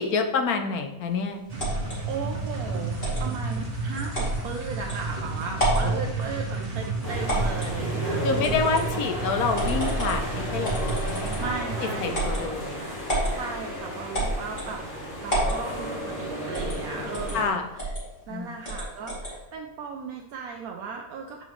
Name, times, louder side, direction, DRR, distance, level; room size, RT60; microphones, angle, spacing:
voice 1, 0.0-1.4 5.8-6.0 8.2-11.5 11.8-12.9 17.3-17.7 18.3-18.6, left 4 dB, 75° left, 6 dB, 1.3 m, -28 dB
sound 1, 1.5-12.1, right 3 dB, 30° right, 1.1 m, -32 dB
sound 2, 1.6-2.0 3.0-3.3 4.1-4.4 4.9-5.0 5.5-5.9 7.3-7.7 8.4-8.9 9.5-10.2 10.6-11.5 12.1-12.4 13.1-13.3 14.1-14.7 15.3-15.6 16.5-16.8 17.1-17.4 17.8-18.0 18.6-19.3, right 1 dB, 35° left, 2.9 m, -28 dB
voice 2, 2.0-9.0 11.4-12.2 13.3-14.8 15.2-17.9 18.3-21.4, right 5 dB, 75° right, 1 dB, 1.1 m, -36 dB
sound 3, 7.0-17.5, equal, 10° left, 2.2 m, -34 dB
8.0 x 5.6 x 3.1 m, 0.93 s
omnidirectional pair, 1.6 m